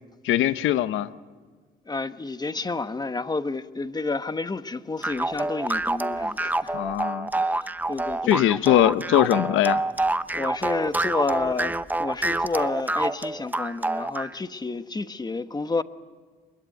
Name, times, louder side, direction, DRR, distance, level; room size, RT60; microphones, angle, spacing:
voice 1, 0.2-1.1 6.7-7.3 8.3-9.8, left 12 dB, 85° left, 0.9 m, -21 dB
voice 2, 1.9-6.8 7.3-8.7 10.3-15.8, left 3 dB, 20° left, 1.1 m, -30 dB
sound 1, 5.0-14.3, right 2 dB, 10° right, 0.7 m, -27 dB
23.5 x 21.5 x 9.2 m
cardioid pair, 90°, 20 cm